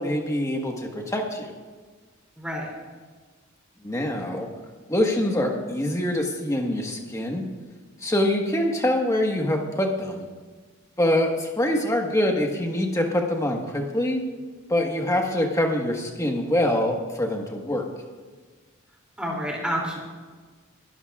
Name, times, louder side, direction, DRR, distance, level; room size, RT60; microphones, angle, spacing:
voice 1, 0.0-1.5 3.8-4.5 4.9-7.4 8.0-10.2 11.0-14.2 14.7-17.9, left 1 dB, 15° left, 1 dB, 1.4 m, -24 dB
voice 2, 2.4-2.7 19.2-20.0, equal, 5° right, -2 dB, 2.7 m, -29 dB
22.0 x 12.5 x 2.4 m, 1.4 s
head